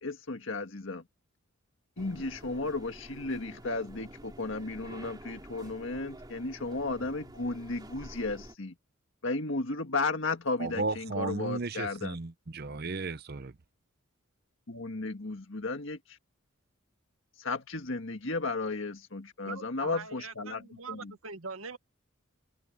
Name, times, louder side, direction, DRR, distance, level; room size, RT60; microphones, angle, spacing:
voice 1, 0.0-1.0 2.0-8.7 9.2-12.2 14.7-16.0 17.4-20.6 20.9-21.1, left 3 dB, 65° left, 1.7 m, -34 dB
sound 1, 2.0-8.5, right 1 dB, 20° right, 2.7 m, -48 dB
voice 2, 10.6-13.5, right 3 dB, 50° right, 0.8 m, -34 dB
voice 3, 19.4-21.8, right 4 dB, 80° right, 1.9 m, -42 dB
head